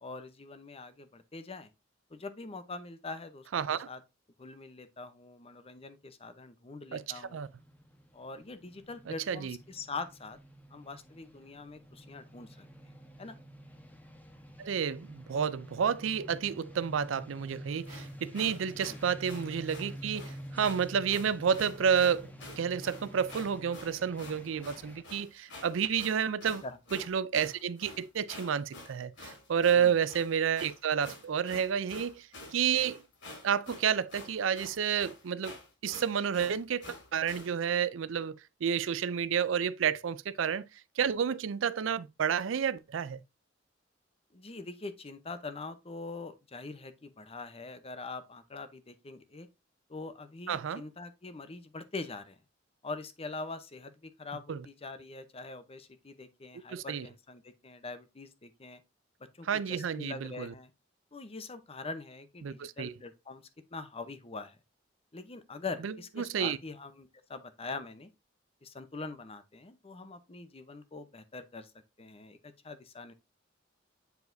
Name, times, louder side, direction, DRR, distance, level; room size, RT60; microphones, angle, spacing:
voice 1, 0.0-1.7 2.1-4.0 4.4-7.4 8.1-10.4 10.7-12.7 13.2-13.4 26.6-26.8 29.7-30.0 44.3-49.5 49.9-52.4 52.8-58.8 59.3-60.7 61.1-63.4 63.7-64.6 65.1-68.1 68.6-71.7 72.0-73.1, left 3 dB, 30° left, 0.8 m, -43 dB
voice 2, 3.5-3.9 6.9-7.0 7.3-7.5 9.1-9.6 14.6-26.6 26.9-33.0 33.4-35.6 35.8-40.7 41.0-43.2 50.5-50.8 54.5-54.6 56.7-57.1 59.4-60.5 62.4-62.9 65.8-66.6, right 7 dB, 80° right, 0.4 m, -30 dB
sound 1, 7.0-25.0, equal, 10° left, 1.0 m, -48 dB
sound 2, 17.8-37.5, left 2 dB, 70° left, 4.2 m, -48 dB
8.0 x 4.7 x 2.6 m
head